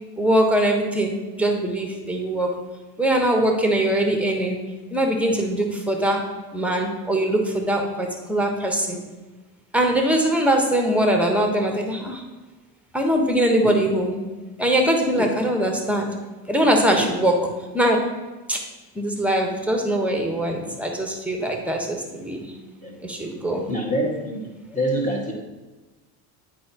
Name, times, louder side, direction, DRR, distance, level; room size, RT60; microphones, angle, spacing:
voice 1, 0.2-2.5 3.0-4.6 4.9-6.2 6.5-9.0 9.7-12.2 12.9-14.3 14.6-16.1 16.5-17.4 17.7-18.0 18.5-18.6 18.9-22.5 23.0-23.6, right 1 dB, 5° right, 2 dB, 1.2 m, -22 dB
voice 2, 23.7-25.3, equal, 15° left, -1 dB, 1.8 m, -26 dB
8.5 x 4.9 x 3.0 m, 1.2 s
hypercardioid pair, 80°, 48 cm